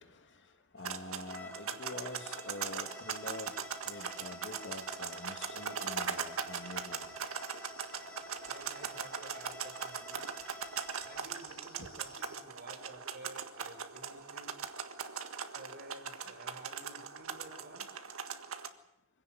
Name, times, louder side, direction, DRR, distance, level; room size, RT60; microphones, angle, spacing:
voice 1, 0.0-3.6 3.8-7.2 11.8-11.9, left 2 dB, 55° left, 6 dB, 2.6 m, -46 dB
sound 1, 0.8-18.7, right 6 dB, 70° right, 1.7 m, -40 dB
Bowed string instrument, 1.2-11.2, left 1 dB, 10° left, 0.9 m, -51 dB
sound 2, 2.8-12.4, left 4 dB, 25° left, 4.0 m, -59 dB
voice 2, 8.4-10.3 11.0-14.5 15.5-17.9, right 1 dB, 50° right, 3 dB, 5.9 m, -52 dB
25.0 x 17.0 x 9.4 m, 0.85 s
head